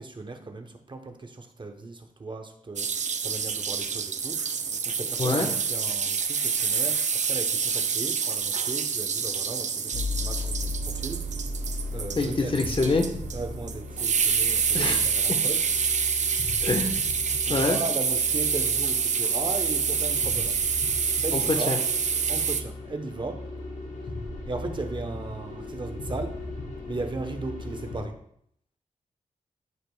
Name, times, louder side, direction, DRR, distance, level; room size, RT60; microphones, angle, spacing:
voice 1, 0.0-2.9 3.2-4.4 4.8-11.2 11.9-12.5 13.3-15.6 17.5-20.5 21.2-21.8 22.3-23.4 24.5-26.4 26.9-28.2, right 3 dB, 35° right, 5 dB, 0.9 m, -36 dB
sound 1, 2.8-22.6, right 6 dB, 60° right, 0.6 m, -27 dB
sound 2, 9.9-28.0, left 2 dB, 65° left, 2.6 m, -37 dB
voice 2, 12.2-13.1 14.7-15.4 16.6-17.0 17.5-17.8 21.3-21.8, left 3 dB, 40° left, 4 dB, 1.1 m, -26 dB
13.5 x 5.0 x 2.3 m, 0.68 s
cardioid pair, 80°, 14 cm